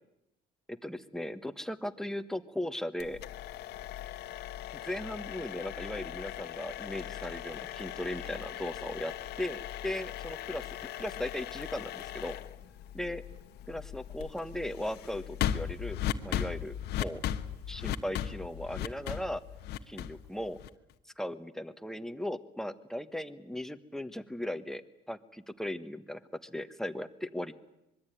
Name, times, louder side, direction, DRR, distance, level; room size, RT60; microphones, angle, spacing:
voice 1, 0.7-3.2 4.7-10.7 10.9-12.4 12.9-13.2 13.7-17.2 17.7-19.4 19.9-20.6 21.2-24.8 25.1-27.5, left 1 dB, 5° left, 10 dB, 1.4 m, -37 dB
sound 1, 3.0-20.9, left 11 dB, 75° left, 1.3 m, -38 dB
25.0 x 22.0 x 9.2 m, 0.87 s
cardioid pair, 110°, 17 cm